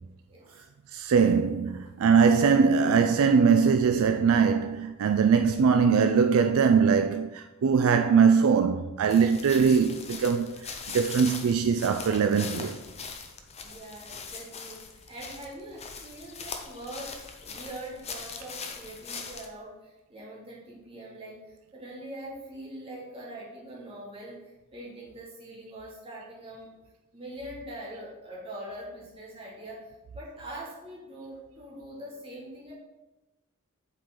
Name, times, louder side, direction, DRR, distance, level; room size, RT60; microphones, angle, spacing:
voice 1, 0.3-0.6 13.6-26.7 27.1-29.8 30.1-32.7, right 1 dB, 25° right, 2.1 m, -43 dB
voice 2, 0.9-12.8, right 6 dB, 65° right, 0.4 m, -22 dB
sound 1, 9.1-19.5, left 5 dB, 30° left, 0.6 m, -41 dB
7.5 x 4.7 x 3.7 m
head